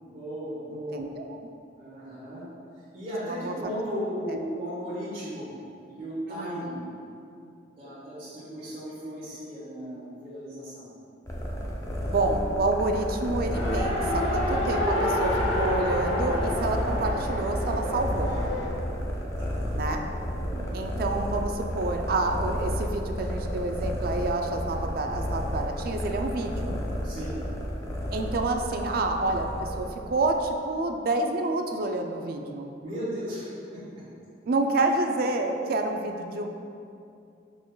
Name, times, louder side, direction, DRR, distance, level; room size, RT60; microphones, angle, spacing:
voice 1, 0.0-1.0 1.8-2.4 2.9-5.5 5.9-6.8 7.7-10.9 19.4-19.5 20.3-20.7 27.0-27.3 32.8-33.8, equal, 35° right, -13 dB, 1.2 m, -36 dB
voice 2, 0.7-1.4 3.3-3.7 4.3-4.4 6.3-6.7 12.1-18.4 19.7-20.1 20.7-26.8 28.1-32.7 34.5-36.5, right 2 dB, 55° right, 4 dB, 0.3 m, -28 dB
sound 1, 11.3-30.5, equal, 15° left, 0.5 m, -32 dB
Race car auto racing, 13.5-18.7, left 1 dB, 75° left, 1.1 m, -28 dB
6.1 x 3.8 x 2.2 m, 2.6 s
head